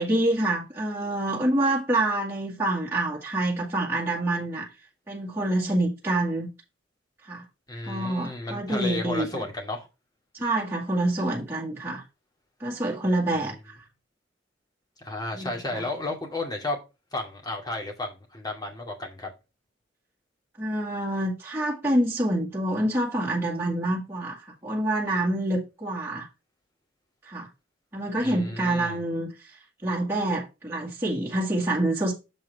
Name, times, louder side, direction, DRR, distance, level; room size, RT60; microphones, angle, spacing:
voice 1, 0.0-4.7 5.1-6.5 7.2-7.4 7.8-9.3 10.3-12.0 12.6-13.8 15.3-15.8 20.6-26.3 27.2-27.5 27.9-32.1, right 1 dB, 15° right, 1.9 m, -27 dB
voice 2, 7.7-9.9 13.3-13.5 15.0-16.8 17.1-19.3 28.2-29.0, left 2 dB, 20° left, 2.2 m, -33 dB
7.4 x 4.6 x 4.7 m
head